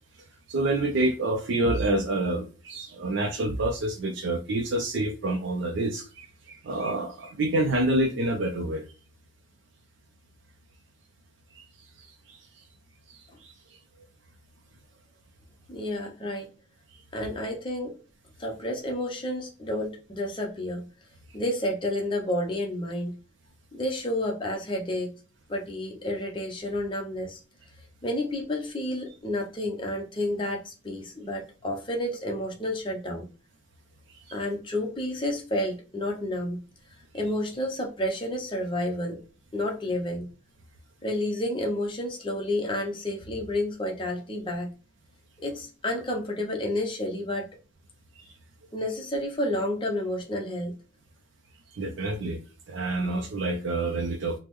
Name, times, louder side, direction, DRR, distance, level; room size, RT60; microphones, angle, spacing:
voice 1, 0.5-8.9 11.6-11.7 12.0-12.4 13.1-13.5 34.3-34.4 48.2-48.3 51.7-52.4 52.7-54.4, right 2 dB, 65° right, 0.4 m, -28 dB
voice 2, 15.7-16.5 17.1-18.0 18.4-20.9 21.3-23.1 23.7-25.1 25.5-27.4 28.0-33.2 34.3-36.6 37.1-39.2 39.5-40.3 41.0-44.7 45.4-47.5 48.7-50.7, left 1 dB, 25° left, 0.6 m, -30 dB
3.4 x 2.0 x 3.0 m
head